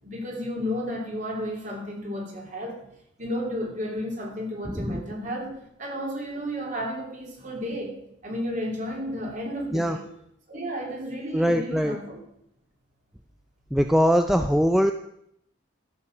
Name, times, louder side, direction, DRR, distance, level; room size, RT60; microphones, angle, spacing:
voice 1, 0.0-2.9 3.2-8.0 8.2-10.1 10.5-12.2, equal, 40° right, 0 dB, 3.2 m, -32 dB
voice 2, 4.7-5.0 9.7-10.0 11.3-12.0 13.7-14.9, equal, ahead, 6 dB, 0.4 m, -22 dB
14.0 x 7.2 x 6.6 m, 0.74 s
head